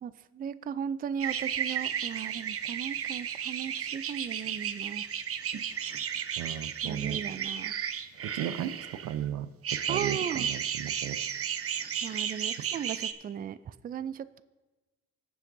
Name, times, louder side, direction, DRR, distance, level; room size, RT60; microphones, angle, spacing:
voice 1, 0.0-5.1 6.8-7.7 9.9-10.5 12.0-14.4, right 8 dB, 30° right, 15 dB, 0.4 m, -36 dB
sound 1, 1.2-9.2 9.6-13.1, right 8 dB, 50° right, 0.7 m, -33 dB
voice 2, 6.4-7.2 8.3-11.2, right 10 dB, 85° right, 13 dB, 0.6 m, -35 dB
21.0 x 7.3 x 2.6 m, 1.2 s
cardioid pair, 90°, 30 cm